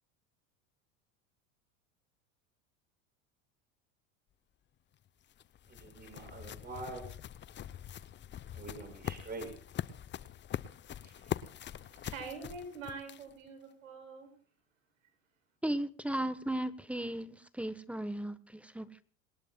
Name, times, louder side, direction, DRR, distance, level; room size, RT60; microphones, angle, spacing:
sound 1, 4.9-13.5, left 10 dB, 30° left, 0.8 m, -43 dB
voice 1, 5.7-7.0 8.5-9.5 11.0-11.1, right 3 dB, 25° right, 6.5 m, -45 dB
voice 2, 11.7-14.3, right 4 dB, 90° right, 7.1 m, -45 dB
voice 3, 15.6-19.0, right 1 dB, 5° right, 1.2 m, -36 dB
27.0 x 19.0 x 2.3 m
hypercardioid pair, 95°, 39 cm